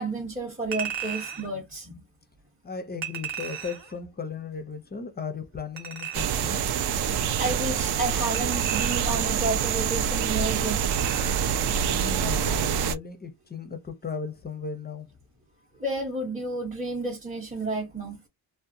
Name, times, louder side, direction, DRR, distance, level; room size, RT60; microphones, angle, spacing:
voice 1, 0.0-2.1 7.4-10.9 15.8-18.2, right 2 dB, 15° right, 0.7 m, -31 dB
Chink clink, 0.7-1.5 3.0-3.9 5.8-6.5 8.3-9.3 10.9-11.5 11.9-12.0, right 8 dB, 75° right, 1.0 m, -35 dB
voice 2, 2.6-6.7 11.8-15.1 15.6-15.7, left 5 dB, 20° left, 0.5 m, -36 dB
sound 1, 6.1-12.9, right 8 dB, 60° right, 0.5 m, -26 dB
2.7 x 2.2 x 2.5 m
cardioid pair, 100°, 46 cm